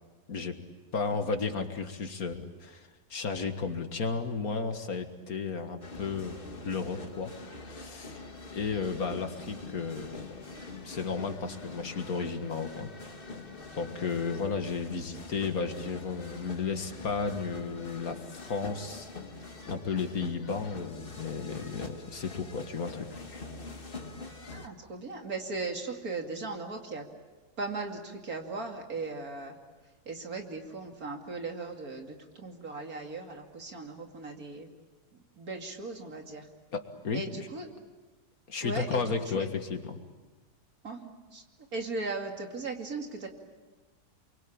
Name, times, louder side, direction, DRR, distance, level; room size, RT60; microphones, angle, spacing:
voice 1, 0.9-6.4 6.6-7.3 7.7-8.2 8.5-10.3 10.8-12.9 13.7-19.1 19.7-23.2 36.7-37.2 38.5-40.0, left 5 dB, 60° left, 7 dB, 2.1 m, -33 dB
sound 1, 5.8-24.7, left 3 dB, 35° left, 1.9 m, -44 dB
voice 2, 24.5-27.0 27.6-29.5 30.1-34.7 35.4-36.5 37.1-37.7 38.6-39.5 40.8-41.4 41.7-43.3, right 3 dB, 60° right, 3 dB, 2.9 m, -38 dB
28.5 x 23.5 x 8.7 m, 1.3 s
omnidirectional pair, 1.7 m